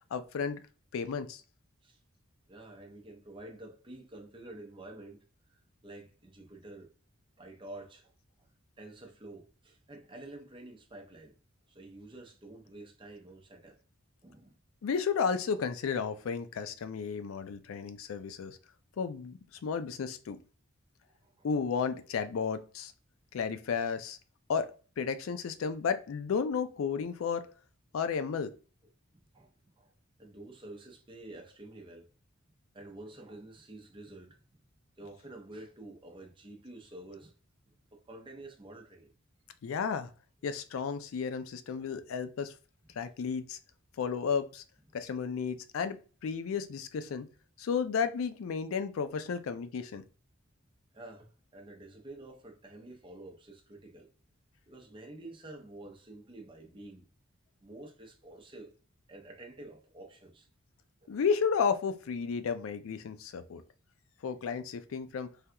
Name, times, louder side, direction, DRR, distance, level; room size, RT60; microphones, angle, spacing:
voice 1, 0.1-0.6 0.9-1.4 14.8-18.6 19.0-20.4 21.4-22.9 23.3-24.2 24.5-27.5 27.9-28.5 39.6-40.1 40.4-42.5 43.0-43.6 44.0-44.6 44.9-47.3 47.6-50.0 61.1-63.6 64.2-65.3, left 6 dB, 80° left, 0.4 m, -33 dB
voice 2, 2.5-5.2 5.5-6.9 7.4-8.5 8.8-11.4 11.7-13.8 14.2-14.6 21.1-21.5 29.1-29.9 30.2-32.1 32.7-34.4 35.0-37.3 37.7-39.1 42.9-43.0 44.9-45.0 50.9-54.1 54.7-57.0 57.6-58.7 59.1-60.5 61.0-61.1, right 2 dB, 25° right, 0.6 m, -49 dB
3.4 x 2.3 x 2.7 m
head